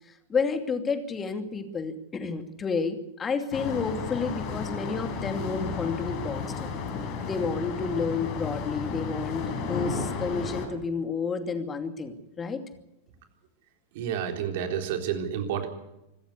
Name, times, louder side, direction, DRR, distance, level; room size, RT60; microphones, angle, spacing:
voice 1, 0.3-6.7 7.2-12.6, left 4 dB, 20° left, 7 dB, 2.7 m, -30 dB
sound 1, 3.5-10.7, left 5 dB, 40° left, 5.2 m, -33 dB
voice 2, 13.9-15.7, right 8 dB, 50° right, 5 dB, 3.8 m, -30 dB
25.5 x 14.0 x 8.3 m, 0.90 s
figure-of-eight pair, 90°, 0 cm